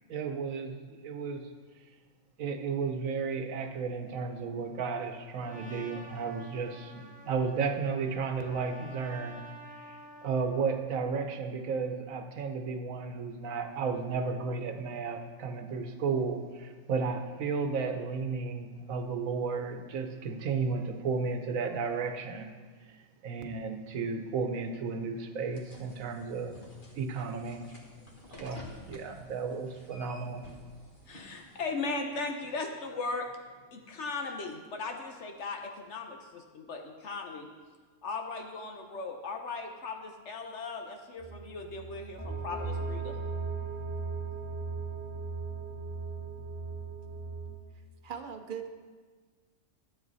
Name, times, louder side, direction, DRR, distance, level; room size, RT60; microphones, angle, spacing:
voice 1, 0.1-1.4 2.4-9.4 9.8-22.5 22.9-26.6 26.9-27.6 28.3-30.4, right 5 dB, 75° right, 7 dB, 1.2 m, -33 dB
Trumpet, 5.4-10.9, right 1 dB, 10° right, 0.5 m, -50 dB
sound 1, 25.5-31.7, left 1 dB, 40° left, 1.5 m, -52 dB
voice 2, 31.1-33.3 33.7-37.5 38.0-43.2, left 3 dB, 60° left, 4 dB, 1.0 m, -37 dB
sound 2, 41.2-47.5, right 4 dB, 10° left, 2.1 m, -37 dB
voice 3, 48.0-48.7, right 7 dB, 50° right, 6 dB, 0.6 m, -39 dB
12.0 x 7.2 x 4.1 m, 1.5 s
omnidirectional pair, 1.4 m